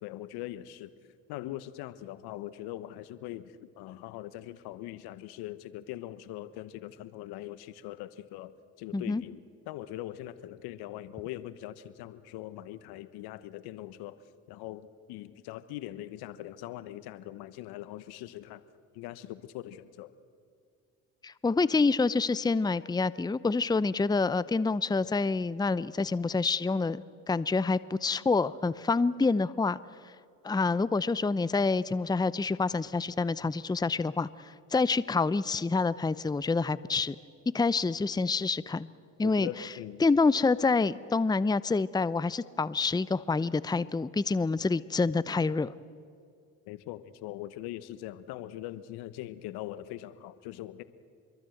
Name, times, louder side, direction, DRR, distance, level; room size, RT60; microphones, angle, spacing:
voice 1, 0.0-0.9 1.3-8.5 8.8-14.2 14.5-18.6 18.9-20.1 39.2-40.0 46.7-50.8, left 14 dB, 75° left, 14 dB, 1.1 m, -41 dB
voice 2, 21.2-29.8 30.4-37.2 37.5-38.9 39.2-39.5 40.0-45.7, left 4 dB, 10° left, 17 dB, 0.7 m, -27 dB
25.5 x 22.5 x 7.9 m, 2.3 s
hypercardioid pair, 60°, 38 cm